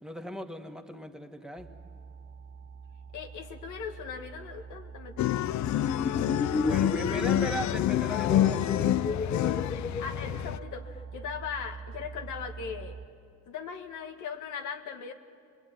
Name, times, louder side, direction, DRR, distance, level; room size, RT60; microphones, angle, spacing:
voice 1, 0.0-1.7 6.5-8.9, equal, ahead, 4 dB, 2.0 m, -38 dB
sound 1, 1.6-13.1, right 5 dB, 50° right, 1.6 m, -45 dB
voice 2, 3.1-5.4 10.0-13.0 13.5-15.1, left 6 dB, 80° left, 6 dB, 2.0 m, -39 dB
sound 2, 5.2-10.6, left 13 dB, 65° left, 0.6 m, -28 dB
sound 3, 5.7-11.0, left 4 dB, 20° left, 0.6 m, -33 dB
26.5 x 21.5 x 9.3 m, 2.3 s
cardioid pair, 90°, 30 cm